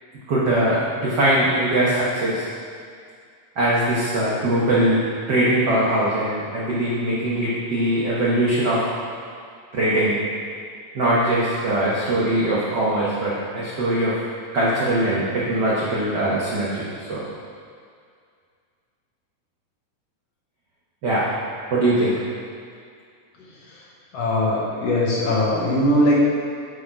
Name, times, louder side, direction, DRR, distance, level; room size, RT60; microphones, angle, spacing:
voice 1, 0.3-2.5 3.6-8.8 9.7-10.2 10.9-14.2 14.5-17.2 21.0-21.3 21.7-22.2, right 1 dB, 80° right, -8 dB, 0.9 m, -21 dB
voice 2, 24.1-26.1, left 1 dB, 65° left, -4 dB, 1.7 m, -20 dB
8.5 x 4.0 x 4.8 m, 2.2 s
omnidirectional pair, 3.4 m